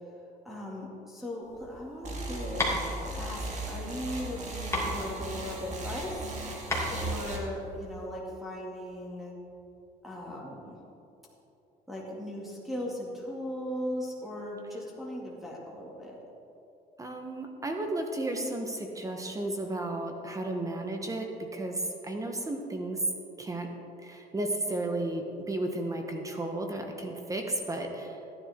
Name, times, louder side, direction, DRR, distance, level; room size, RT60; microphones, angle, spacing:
voice 1, 0.4-2.6 3.1-6.3 6.9-9.3 10.0-10.8 11.9-16.2, left 1 dB, ahead, -6 dB, 2.3 m, -38 dB
sound 1, 1.4-8.0, left 1 dB, 15° left, 2.7 m, -35 dB
sound 2, 2.0-7.4, right 1 dB, 45° right, 2.2 m, -37 dB
voice 2, 17.0-23.0 23.4-23.7 24.0-28.2, right 1 dB, 20° right, 3 dB, 1.1 m, -33 dB
14.5 x 10.5 x 3.6 m, 2.8 s
cardioid pair, 110°, 17 cm